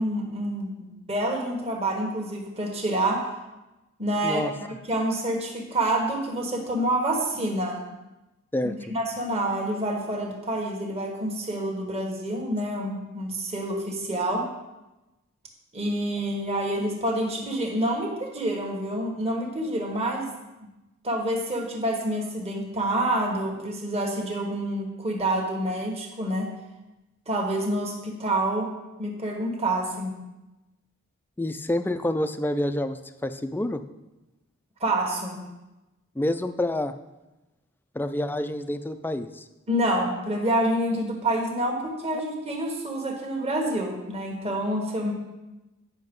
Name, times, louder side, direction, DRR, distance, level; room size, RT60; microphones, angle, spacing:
voice 1, 0.0-3.2 4.0-4.4 4.7-7.8 8.9-14.5 15.7-20.3 21.0-26.5 27.3-28.7 29.0-30.1 34.8-35.4 39.7-45.1, right 1 dB, 30° right, 0 dB, 1.5 m, -27 dB
voice 2, 31.4-33.8 36.2-36.9 37.9-39.4, left 1 dB, 10° left, 10 dB, 0.4 m, -28 dB
9.7 x 5.9 x 5.4 m, 1.0 s
head